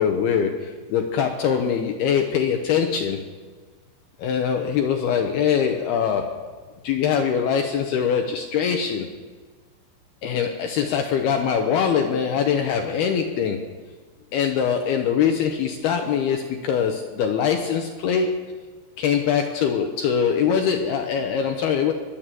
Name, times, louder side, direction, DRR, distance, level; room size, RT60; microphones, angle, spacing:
voice 1, 0.0-3.2 4.2-6.6 6.8-9.1 10.2-13.6 14.3-18.6 19.0-21.9, left 7 dB, 80° left, 4 dB, 2.4 m, -23 dB
22.0 x 8.5 x 7.6 m, 1.5 s
omnidirectional pair, 5.6 m